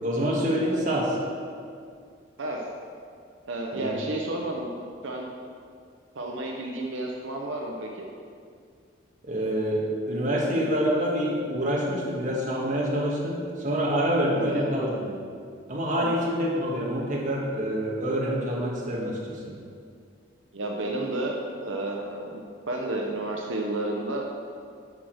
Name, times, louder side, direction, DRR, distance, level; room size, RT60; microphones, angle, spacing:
voice 1, 0.0-1.2 3.7-4.0 9.2-15.1 15.7-19.5, equal, 40° right, -4 dB, 1.5 m, -26 dB
voice 2, 3.5-4.7 5.0-5.3 6.1-8.1 14.3-14.7 20.5-24.3, right 2 dB, 80° right, 0 dB, 0.8 m, -31 dB
8.3 x 4.9 x 6.1 m, 2.2 s
head